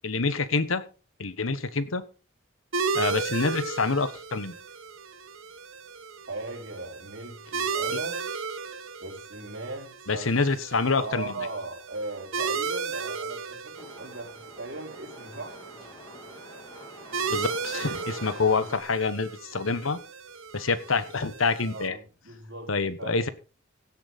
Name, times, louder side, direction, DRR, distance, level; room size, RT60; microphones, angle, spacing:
voice 1, 0.0-0.8 1.2-2.0 2.9-4.5 7.9-8.0 10.1-11.3 17.3-20.0 20.5-22.0 22.7-23.3, left 4 dB, 90° left, 14 dB, 1.2 m, -27 dB
sound 1, 2.7-21.9, right 5 dB, 90° right, 1.2 m, -35 dB
voice 2, 6.3-8.2 9.0-10.3 11.0-15.6 18.5-18.6 21.6-22.7 23.0-23.3, right 2 dB, 65° right, 0 dB, 4.8 m, -38 dB
sound 2, 13.7-18.8, left 1 dB, 20° left, 3.0 m, -48 dB
16.5 x 8.7 x 4.1 m, 0.34 s
head